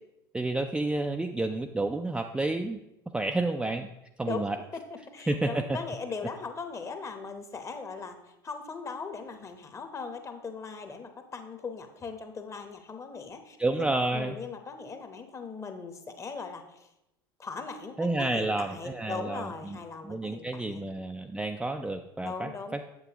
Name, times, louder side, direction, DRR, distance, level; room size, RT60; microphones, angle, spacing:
voice 1, 0.3-2.8 3.1-3.9 4.2-4.6 5.3-5.8 13.6-14.4 18.0-19.8 20.0-22.8, right 2 dB, 5° right, 4 dB, 0.4 m, -30 dB
voice 2, 5.1-8.2 8.4-16.9 17.4-20.8 22.2-22.8, left 4 dB, 25° left, 7 dB, 0.9 m, -39 dB
8.0 x 7.1 x 2.9 m, 0.88 s
figure-of-eight pair, 75°, 12 cm